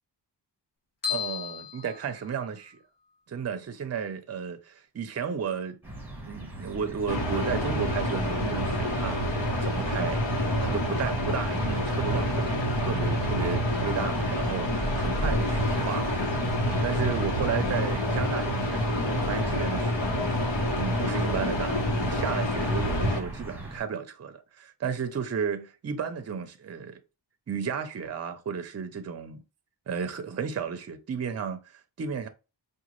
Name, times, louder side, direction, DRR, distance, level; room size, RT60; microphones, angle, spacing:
sound 1, 1.0-2.8, left 9 dB, 50° left, 1.1 m, -35 dB
voice 1, 1.1-2.8 3.3-5.8 6.3-9.2 9.6-10.2 10.6-16.5 16.7-20.3 20.7-27.0 27.5-29.4 29.9-32.3, right 6 dB, 35° right, 0.5 m, -33 dB
sound 2, 5.8-23.8, right 1 dB, 5° right, 1.0 m, -41 dB
sound 3, 7.1-23.2, left 1 dB, 85° left, 1.0 m, -27 dB
4.9 x 2.3 x 3.0 m
wide cardioid pair, 125°, 43 cm